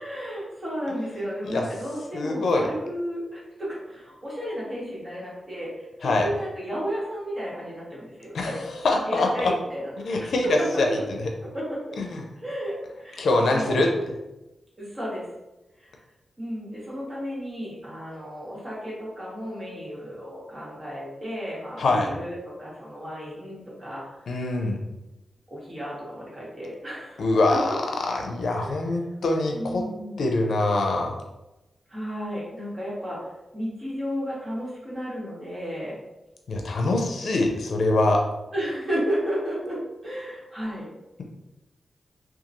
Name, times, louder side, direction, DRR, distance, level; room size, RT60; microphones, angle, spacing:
voice 1, 0.0-8.6 9.0-11.0 11.4-12.0 12.4-13.9 14.8-15.2 15.8-15.9 16.4-24.1 25.5-27.2 27.5-27.8 28.5-28.9 29.5-30.2 31.9-36.0 38.5-40.9, equal, 35° right, -6 dB, 1.3 m, -33 dB
voice 2, 2.1-2.7 6.0-6.3 8.3-9.5 10.0-10.5 10.8-11.0 12.0-12.2 13.2-13.9 21.8-22.1 24.3-24.8 27.2-27.8 28.1-29.8 30.2-31.1 36.5-38.2, left 2 dB, 85° left, 2 dB, 0.4 m, -24 dB
2.9 x 2.3 x 2.5 m, 0.99 s
cardioid pair, 70°, 0 cm